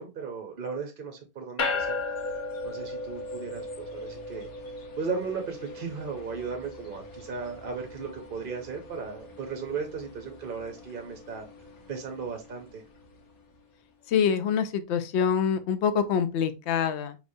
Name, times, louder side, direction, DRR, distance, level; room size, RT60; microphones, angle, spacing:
voice 1, 0.0-2.0 2.6-4.5 5.0-11.5 11.9-12.8, right 5 dB, 45° right, 0.8 m, -36 dB
sound 1, 1.6-13.2, left 3 dB, 90° left, 1.6 m, -38 dB
voice 2, 14.1-17.2, left 7 dB, 60° left, 0.8 m, -25 dB
4.9 x 3.4 x 2.6 m
omnidirectional pair, 1.5 m